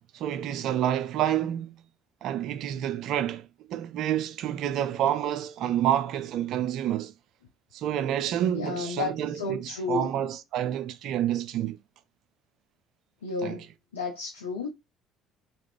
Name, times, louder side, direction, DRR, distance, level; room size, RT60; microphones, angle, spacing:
voice 1, 0.1-1.8 2.2-7.1 7.7-11.8 13.4-13.6, right 11 dB, 60° right, 0.4 m, -28 dB
voice 2, 8.5-10.1 13.2-13.7 13.9-14.7, left 3 dB, 90° left, 0.4 m, -32 dB
2.9 x 2.4 x 3.2 m
hypercardioid pair, 60°, 0 cm